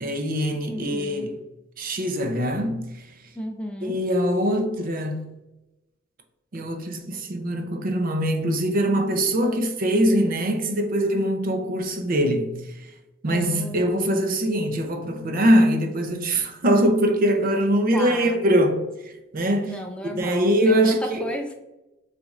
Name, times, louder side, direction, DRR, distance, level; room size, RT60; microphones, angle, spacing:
voice 1, 0.0-1.4 1.8-3.0 3.8-5.3 6.5-12.9 13.2-19.8 20.1-21.2, equal, 45° right, 0.6 m, -23 dB
voice 2, 0.7-1.3 3.4-4.0 9.4-9.6 13.3-14.3 17.9-18.4 19.6-21.5, equal, 5° left, 0.3 m, -34 dB
7.0 x 2.5 x 2.4 m
head